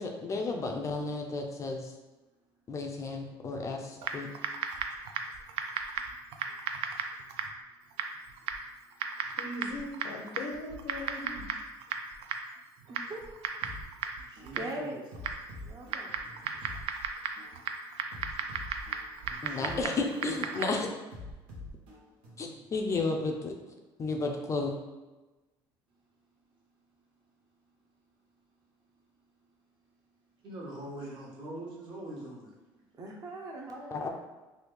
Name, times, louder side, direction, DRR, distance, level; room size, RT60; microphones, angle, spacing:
voice 1, 0.0-1.9 2.7-4.3 19.4-20.9 22.4-23.5 24.0-24.8 33.9-34.1, left 3 dB, 35° left, 2 dB, 0.4 m, -33 dB
Typing, 4.0-20.9, right 6 dB, 70° right, 0.3 m, -37 dB
voice 2, 9.4-11.5, left 2 dB, 75° left, 2 dB, 0.6 m, -39 dB
voice 3, 12.9-13.3 14.5-15.0 15.6-16.2 33.0-34.1, right 1 dB, 40° right, 0 dB, 0.7 m, -40 dB
sound 1, 13.6-13.8 14.4-14.6 15.1-16.8 17.4-17.6 18.1-19.8 20.4-20.6 21.1-22.6, left 2 dB, 85° right, 0.9 m, -46 dB
voice 4, 14.3-14.9 19.5-20.0 30.4-32.5, right 1 dB, 55° right, -5 dB, 1.2 m, -42 dB
3.4 x 2.3 x 3.1 m, 1.1 s
cardioid pair, 115°, 10 cm